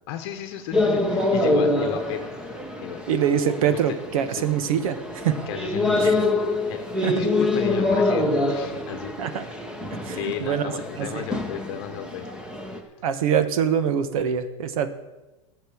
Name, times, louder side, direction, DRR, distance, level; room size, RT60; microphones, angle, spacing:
voice 1, 0.1-2.2 2.8-3.0 3.9-4.0 4.3-4.4 5.5-6.9 7.1-9.4 10.1-12.3, left 10 dB, 45° left, 7 dB, 1.0 m, -34 dB
sound 1, 0.7-12.8, left 2 dB, 5° right, 1.0 m, -25 dB
voice 2, 3.1-5.4 6.0-6.2 7.0-7.1 9.2-9.5 9.9-10.7 11.0-11.2 13.0-14.9, right 8 dB, 85° right, 11 dB, 1.3 m, -24 dB
13.5 x 6.8 x 8.4 m, 1.1 s
supercardioid pair, 175°, 18 cm